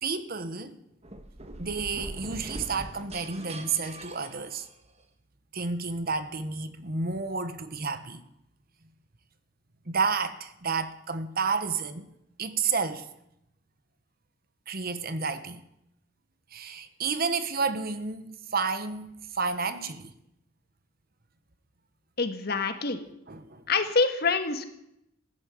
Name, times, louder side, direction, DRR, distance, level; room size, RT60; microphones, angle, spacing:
voice 1, 0.0-0.8 1.6-4.7 5.5-8.2 9.9-12.1 12.4-13.1 14.7-15.6 16.5-20.1 23.3-23.7, right 5 dB, 50° right, 1.2 m, -31 dB
sound 1, 1.0-5.0, right 1 dB, 30° right, 1.4 m, -42 dB
voice 2, 22.2-23.0 23.7-24.7, left 4 dB, 50° left, 1.8 m, -26 dB
15.0 x 11.5 x 8.5 m
head